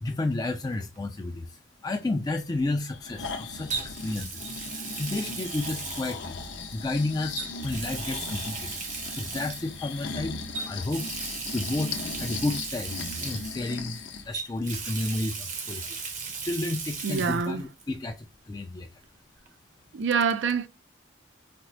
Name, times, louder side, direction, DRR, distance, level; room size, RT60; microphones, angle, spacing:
voice 1, 0.0-4.3 4.7-6.4 6.7-8.8 9.2-10.4 10.7-11.1 11.5-15.8 16.4-18.9, left 2 dB, 20° left, 0.3 m, -31 dB
Water tap faucet, 0.7-1.0 3.7-6.8 7.3-9.8 10.5-14.0 14.3-17.5 17.8-17.9 19.5-19.6, right 5 dB, 40° right, 0.7 m, -37 dB
Breathing, 2.9-14.3 14.7-14.8, left 4 dB, 65° left, 0.6 m, -38 dB
voice 2, 17.0-17.6 19.9-20.7, right 6 dB, 70° right, 0.4 m, -26 dB
4.3 x 2.0 x 2.5 m
head